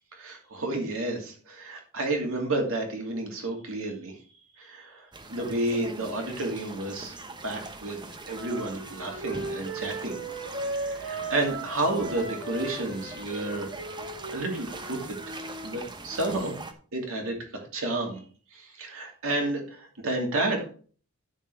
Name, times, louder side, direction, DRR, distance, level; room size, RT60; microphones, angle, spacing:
voice 1, 0.1-4.1 4.6-10.2 10.8-13.7 14.3-15.0 15.6-16.6 16.9-18.2 18.5-20.7, right 2 dB, 65° right, 2 dB, 2.7 m, -31 dB
sound 1, 5.1-16.7, right 2 dB, 20° right, 1.0 m, -42 dB
Wind instrument woodwind instrument, 8.3-15.7, right 2 dB, 85° right, 3.9 m, -37 dB
12.5 x 4.6 x 4.7 m, 0.41 s
head